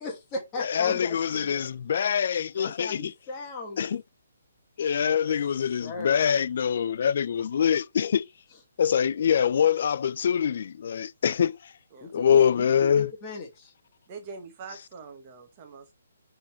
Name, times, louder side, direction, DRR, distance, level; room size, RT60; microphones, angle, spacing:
voice 1, 0.0-1.6 2.5-3.9 4.8-5.3 5.8-6.2 8.5-8.6 12.0-13.7, left 2 dB, 20° left, 1.4 m, -38 dB
voice 2, 0.7-3.1 3.8-4.0 4.8-8.3 8.8-11.6 12.1-13.1, left 8 dB, 50° left, 0.3 m, -24 dB
voice 3, 14.1-15.9, right 4 dB, 25° right, 1.2 m, -43 dB
6.4 x 3.8 x 4.2 m
hypercardioid pair, 165°, 0 cm